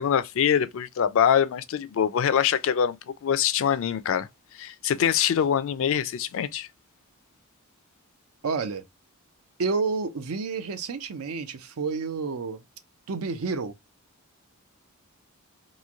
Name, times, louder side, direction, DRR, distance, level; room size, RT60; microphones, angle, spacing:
voice 1, 0.0-4.3 4.5-6.7, left 8 dB, 65° left, 0.4 m, -24 dB
voice 2, 8.4-8.8 9.6-12.6 13.1-13.7, right 4 dB, 80° right, 0.5 m, -29 dB
3.0 x 2.5 x 2.3 m
head